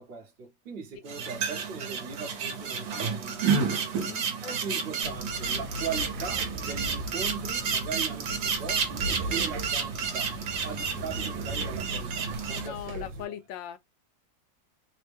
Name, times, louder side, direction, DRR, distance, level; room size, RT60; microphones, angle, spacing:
voice 1, 0.0-3.6 4.4-10.4 10.6-13.4, right 5 dB, 40° right, 0.9 m, -40 dB
sound 1, 1.1-12.7, right 6 dB, 60° right, 1.3 m, -31 dB
voice 2, 4.0-4.3 10.9-11.0 12.6-13.8, left 10 dB, 80° left, 1.3 m, -39 dB
sound 2, 5.0-13.2, right 1 dB, 85° right, 1.3 m, -38 dB
3.4 x 2.1 x 3.4 m
omnidirectional pair, 2.0 m